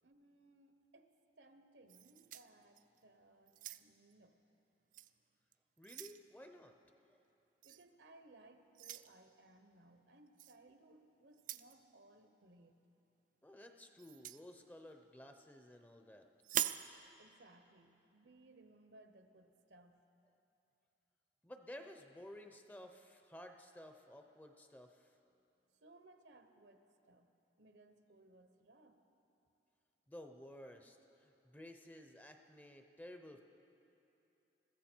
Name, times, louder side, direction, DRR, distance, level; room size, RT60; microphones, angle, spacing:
voice 1, 0.0-4.4 7.6-12.9 17.2-20.0 25.7-27.3 27.6-29.0, right 2 dB, 70° right, 7 dB, 0.9 m, -64 dB
sound 1, 1.9-3.0 3.5-4.1 4.9-5.1 5.5-6.2 7.6-7.8 8.7-9.1 10.4-10.6 11.3-11.7 14.0-14.4 16.4-16.9, right 12 dB, 45° right, 0.3 m, -42 dB
voice 2, 5.8-6.8 7.0-7.2 13.4-16.3 21.4-25.2 30.1-33.4, left 1 dB, 10° left, 5 dB, 0.6 m, -54 dB
21.5 x 14.5 x 4.5 m, 2.9 s
head